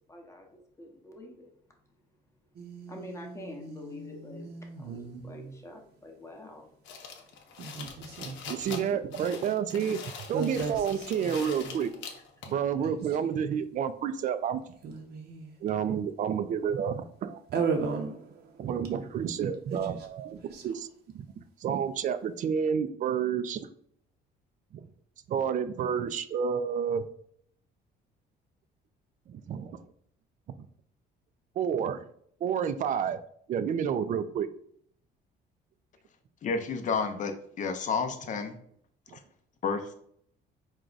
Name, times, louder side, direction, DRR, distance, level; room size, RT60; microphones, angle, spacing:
voice 1, 0.1-1.5 2.9-6.7, left 1 dB, 15° left, 1 dB, 0.8 m, -46 dB
sound 1, 2.6-5.8 7.6-8.8 10.3-11.9 12.5-12.6 12.8-13.3 14.7-15.7 17.5-19.2 19.4-20.8, right 5 dB, 60° right, 0.7 m, -37 dB
sound 2, 6.9-12.6, left 6 dB, 85° left, 0.7 m, -43 dB
voice 2, 8.5-10.0 10.3-11.9 12.5-14.6 15.6-17.4 18.6-20.9 21.1-21.3 21.6-23.7 24.7-24.8 25.3-27.0 29.3-29.8 30.6-30.7 31.6-32.0 32.4-33.2 33.5-34.5 39.1-39.2, right 7 dB, 45° right, 12 dB, 0.4 m, -30 dB
voice 3, 36.4-37.3 37.6-38.5 39.6-39.9, left 5 dB, 45° left, 7 dB, 0.6 m, -30 dB
4.7 x 2.2 x 3.9 m, 0.64 s
cardioid pair, 125°, 19 cm